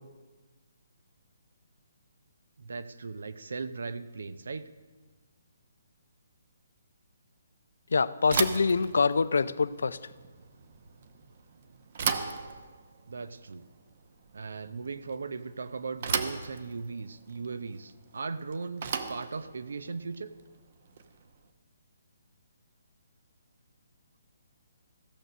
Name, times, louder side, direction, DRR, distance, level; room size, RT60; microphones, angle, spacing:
voice 1, 2.6-4.7 12.1-12.3 13.1-13.6 14.3-20.3, right 4 dB, 80° right, 13 dB, 0.6 m, -38 dB
voice 2, 7.9-10.0, left 4 dB, 80° left, 16 dB, 0.4 m, -25 dB
Bicycle / Thump thud, 8.2-21.3, right 6 dB, 50° right, 0.8 m, -37 dB
15.0 x 6.6 x 6.2 m, 1.3 s
hypercardioid pair, 155°, 0 cm